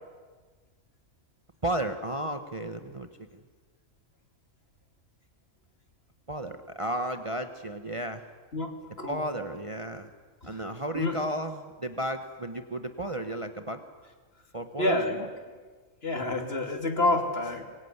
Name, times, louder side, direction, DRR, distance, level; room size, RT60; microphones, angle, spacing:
voice 1, 1.6-3.1 6.3-8.2 9.1-10.1 10.4-13.8 14.5-15.0, right 1 dB, 25° right, 7 dB, 1.2 m, -33 dB
voice 2, 14.8-15.2 16.0-17.6, left 2 dB, 45° left, 4 dB, 3.1 m, -28 dB
24.5 x 23.0 x 9.6 m, 1.4 s
omnidirectional pair, 1.4 m